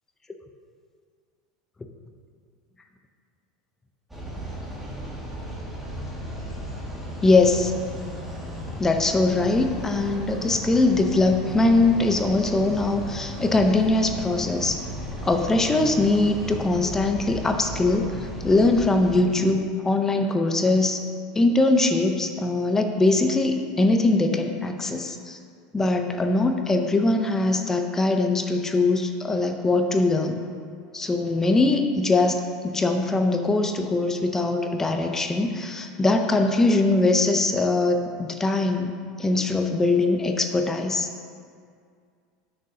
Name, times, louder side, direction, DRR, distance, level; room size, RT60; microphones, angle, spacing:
sound 1, 4.1-19.2, equal, 5° right, 1.9 m, -35 dB
voice 1, 7.2-7.7 8.8-14.8 15.2-21.0 21.3-25.4 25.7-30.4 30.9-38.9 39.2-41.1, left 2 dB, 15° left, 5 dB, 0.6 m, -22 dB
13.0 x 6.4 x 2.8 m, 2.2 s
supercardioid pair, 125°, 3 cm